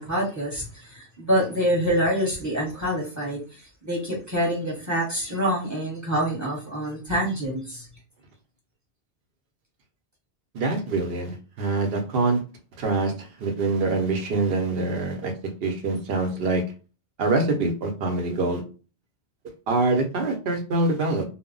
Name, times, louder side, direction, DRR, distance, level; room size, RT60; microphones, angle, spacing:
voice 1, 0.0-3.4 3.8-7.9, equal, 15° right, -3 dB, 1.0 m, -26 dB
voice 2, 10.5-12.4 12.8-15.3 15.6-16.6 17.2-18.6 19.7-21.2, right 3 dB, 60° right, 4 dB, 0.8 m, -25 dB
2.1 x 2.1 x 3.7 m, 0.34 s
omnidirectional pair, 1.2 m